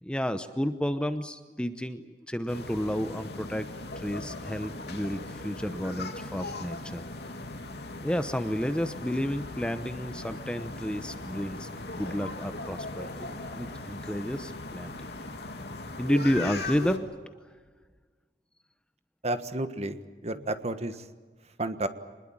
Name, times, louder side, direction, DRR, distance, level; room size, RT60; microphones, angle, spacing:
voice 1, 0.0-3.7 4.0-7.0 8.0-15.0 16.0-17.1, equal, 5° left, 10 dB, 0.9 m, -31 dB
sound 1, 2.5-17.0, left 2 dB, 65° left, 2.9 m, -39 dB
voice 2, 19.2-21.0 21.6-21.9, right 1 dB, 40° right, 10 dB, 1.5 m, -31 dB
26.0 x 21.0 x 8.8 m, 1.4 s
head